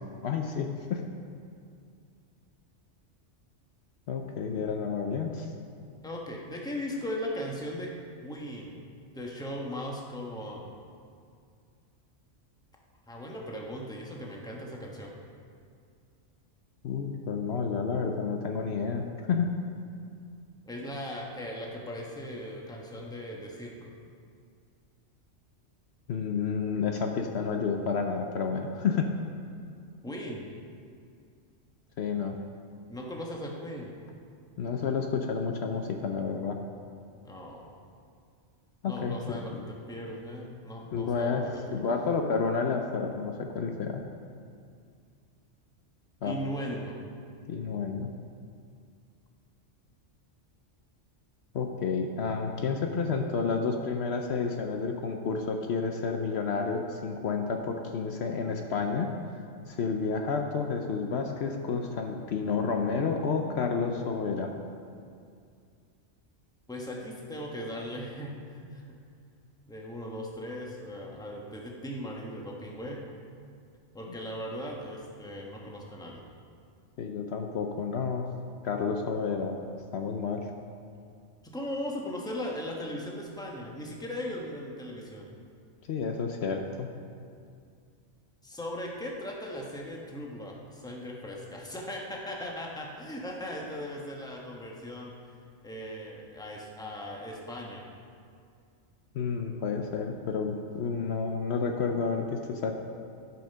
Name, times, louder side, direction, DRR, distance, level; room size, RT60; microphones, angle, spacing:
voice 1, 0.2-1.0 4.1-5.5 16.8-19.5 26.1-29.1 32.0-32.4 34.6-36.6 38.8-39.2 40.9-44.0 46.2-46.4 47.5-48.1 51.5-59.1 59.7-64.5 77.0-78.3 78.6-79.5 79.9-80.5 85.9-86.9 99.1-102.7, left 5 dB, 65° left, 3 dB, 0.9 m, -30 dB
voice 2, 6.0-7.9 8.2-8.8 9.1-10.7 13.1-15.1 20.6-23.9 30.0-30.5 32.9-33.9 37.2-37.7 38.8-41.9 46.2-47.0 66.7-69.0 69.7-73.0 73.9-76.2 81.4-85.3 88.4-95.4 95.6-97.8, equal, 5° left, -1 dB, 1.0 m, -38 dB
12.5 x 5.7 x 5.5 m, 2.3 s
omnidirectional pair, 1.3 m